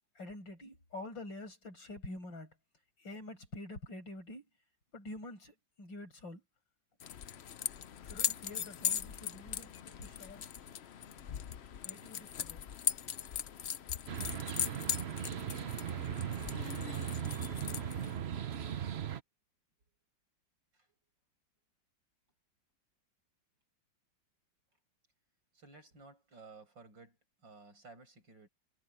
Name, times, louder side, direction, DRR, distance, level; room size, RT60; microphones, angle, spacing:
voice 1, 0.2-2.5 3.0-4.5 4.9-6.4 8.0-10.5 11.8-12.7, left 2 dB, 85° left, 6.7 m, -47 dB
sound 1, 7.0-18.2, left 9 dB, 60° left, 0.7 m, -39 dB
sound 2, 14.1-19.2, right 9 dB, 50° right, 0.8 m, -38 dB
voice 2, 25.5-28.5, right 3 dB, 80° right, 8.2 m, -56 dB
omnidirectional pair, 2.0 m